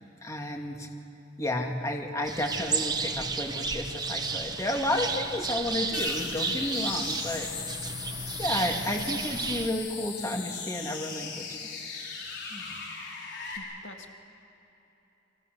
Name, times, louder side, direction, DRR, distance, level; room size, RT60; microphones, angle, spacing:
voice 1, 0.2-0.9 1.4-7.5 8.4-11.5 11.7-11.8 12.5-12.8, left 1 dB, 15° left, 2 dB, 2.5 m, -32 dB
sound 1, 2.2-9.7, right 4 dB, 20° right, 1.3 m, -32 dB
sound 2, 5.9-13.6, left 5 dB, 60° left, 4.9 m, -38 dB
voice 2, 13.6-14.1, left 2 dB, 85° left, 4 dB, 2.1 m, -46 dB
30.0 x 25.5 x 6.7 m, 2.9 s
head